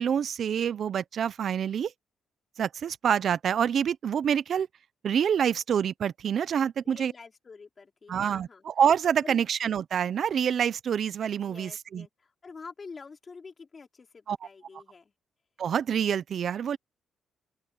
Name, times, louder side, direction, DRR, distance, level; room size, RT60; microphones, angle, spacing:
voice 1, 0.0-1.9 2.6-4.7 5.0-7.1 8.1-12.1 14.3-14.4 14.7-14.8 15.6-16.8, right 8 dB, 60° right, 0.6 m, -27 dB
voice 2, 6.8-8.6 9.2-9.5 11.4-15.1, left 4 dB, 35° left, 4.5 m, -47 dB
open air
cardioid pair, 90°, 0 cm